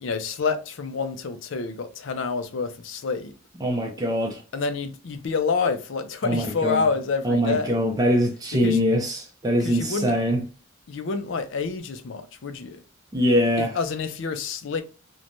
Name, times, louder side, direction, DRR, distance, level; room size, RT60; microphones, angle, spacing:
voice 1, 0.0-3.3 4.5-7.8 8.5-8.8 9.6-10.2 10.9-12.8 13.6-14.8, left 4 dB, 65° left, 0.5 m, -28 dB
voice 2, 3.6-4.4 6.2-6.8 7.2-10.4 13.1-13.7, equal, 20° right, 0.4 m, -23 dB
3.1 x 2.1 x 2.5 m
head